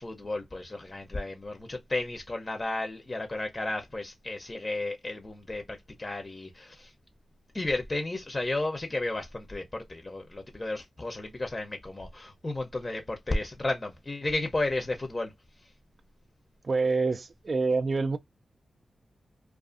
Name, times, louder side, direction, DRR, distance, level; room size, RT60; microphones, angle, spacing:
voice 1, 0.0-6.9 7.5-15.3, left 2 dB, 30° left, 0.6 m, -33 dB
voice 2, 16.6-18.2, right 3 dB, 55° right, 0.4 m, -26 dB
2.4 x 2.4 x 2.4 m
cardioid pair, 65°, 0 cm